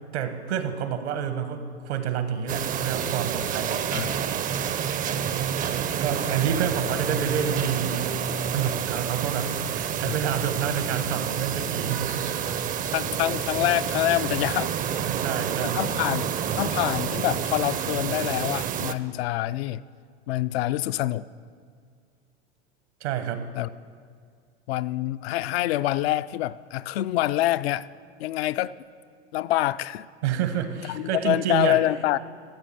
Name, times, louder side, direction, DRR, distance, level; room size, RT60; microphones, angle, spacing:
voice 1, 0.1-3.8 6.0-8.0 8.5-12.3 12.7-12.9 15.0-15.8 23.0-23.4 30.2-31.8, right 8 dB, 75° right, 1.3 m, -29 dB
sound 1, 2.5-18.9, right 8 dB, 25° right, 0.5 m, -28 dB
voice 2, 12.9-14.8 15.7-16.3 16.6-19.8 20.3-21.2 23.6-23.7 24.7-27.9 28.2-28.7 29.3-30.1 30.9-32.2, left 15 dB, 65° left, 0.5 m, -26 dB
14.0 x 7.0 x 6.9 m
hypercardioid pair, 95°, 33 cm